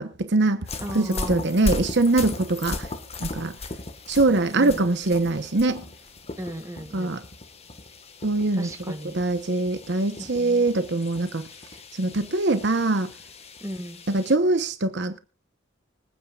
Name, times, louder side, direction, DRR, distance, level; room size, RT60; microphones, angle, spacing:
voice 1, 0.0-0.7 0.9-2.9 3.2-3.6 4.1-5.8 6.9-7.2 8.2-8.7 9.1-11.5 11.9-13.1 14.1-15.2, right 2 dB, 60° right, 1.0 m, -23 dB
sound 1, 0.7-14.4, left 2 dB, 35° left, 1.6 m, -37 dB
voice 2, 0.8-1.5 4.5-5.0 6.4-7.2 8.5-9.1 10.2-10.7 13.6-14.0, equal, 15° right, 2.0 m, -36 dB
25.0 x 9.4 x 2.4 m
head